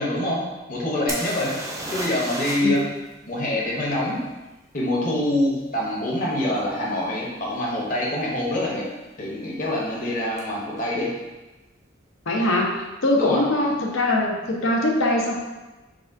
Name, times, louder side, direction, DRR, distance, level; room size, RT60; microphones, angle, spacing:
voice 1, 0.0-1.6 1.9-2.9 3.3-4.2 4.7-8.9 9.2-11.2 13.2-13.5, left 1 dB, 45° left, -4 dB, 0.9 m, -25 dB
sound 1, 1.1-2.8 3.1-3.2 6.6-6.7 7.3-7.5 7.7-8.3 10.4-10.5 10.7-10.8, right 1 dB, 15° right, 0.5 m, -32 dB
voice 2, 12.3-15.4, left 1 dB, 90° left, -1 dB, 0.7 m, -22 dB
6.0 x 2.3 x 2.6 m, 1.1 s
head